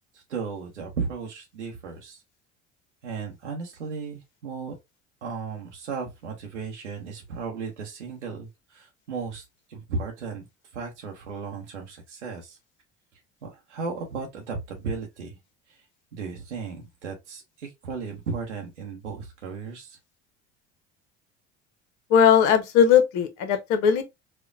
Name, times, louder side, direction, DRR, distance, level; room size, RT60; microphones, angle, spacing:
voice 1, 0.1-2.2 3.0-4.8 5.2-10.5 10.7-12.6 13.4-15.4 15.7-15.8 16.1-20.0, right 5 dB, 90° right, 0.7 m, -35 dB
voice 2, 22.1-24.0, left 8 dB, 60° left, 0.9 m, -19 dB
4.2 x 2.2 x 2.3 m
hypercardioid pair, 65°, 34 cm